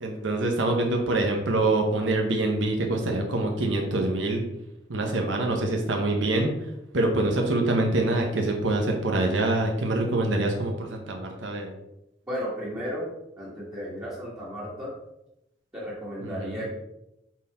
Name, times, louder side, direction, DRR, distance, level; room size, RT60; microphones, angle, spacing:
voice 1, 0.0-4.4 4.9-6.5 6.9-11.7 16.2-16.7, right 2 dB, 75° right, 2 dB, 1.0 m, -25 dB
voice 2, 12.3-13.1 13.4-14.9 15.7-16.7, equal, 15° right, -9 dB, 1.7 m, -34 dB
6.1 x 4.3 x 4.2 m, 0.85 s
head